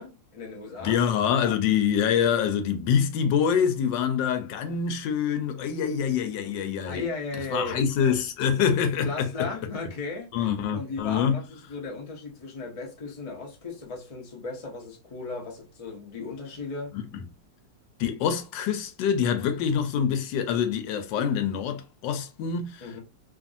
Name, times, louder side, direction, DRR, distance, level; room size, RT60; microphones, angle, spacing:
voice 1, 0.0-1.0 6.8-7.9 9.0-17.0 22.8-23.0, left 3 dB, 50° left, 0.4 m, -36 dB
voice 2, 0.8-7.1 7.5-9.5 10.3-11.4 16.9-17.0 18.0-22.8, left 7 dB, 80° left, 1.2 m, -25 dB
2.8 x 2.6 x 2.5 m
omnidirectional pair, 2.0 m